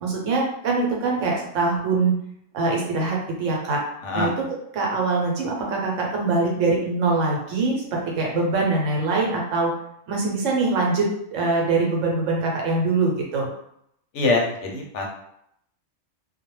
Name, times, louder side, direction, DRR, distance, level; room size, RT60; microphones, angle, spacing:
voice 1, 0.0-2.1 2.5-4.5 4.7-9.8 10.1-13.5, right 3 dB, 75° right, -1 dB, 1.0 m, -23 dB
voice 2, 4.0-4.3 14.1-15.1, left 2 dB, 70° left, 0 dB, 0.9 m, -23 dB
2.4 x 2.2 x 3.0 m, 0.73 s
omnidirectional pair, 1.3 m